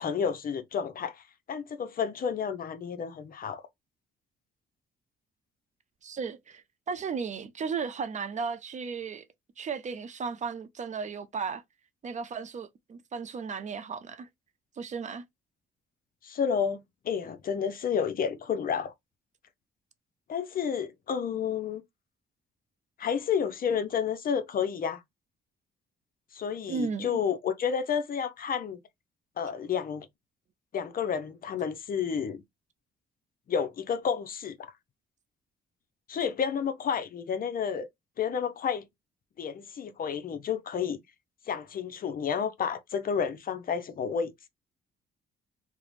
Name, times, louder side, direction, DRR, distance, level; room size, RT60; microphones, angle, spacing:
voice 1, 0.0-3.6 16.2-18.9 20.3-21.8 23.0-25.0 26.3-28.8 29.4-30.1 30.7-32.4 33.5-34.7 36.1-37.9 38.2-38.8 39.4-41.0 41.5-44.3, left 7 dB, 45° left, 0.5 m, -30 dB
voice 2, 6.0-9.2 9.6-11.6 12.0-14.3 14.8-15.2 26.7-27.2, right 5 dB, 40° right, 0.4 m, -35 dB
2.4 x 2.0 x 3.0 m
cardioid pair, 90°, 20 cm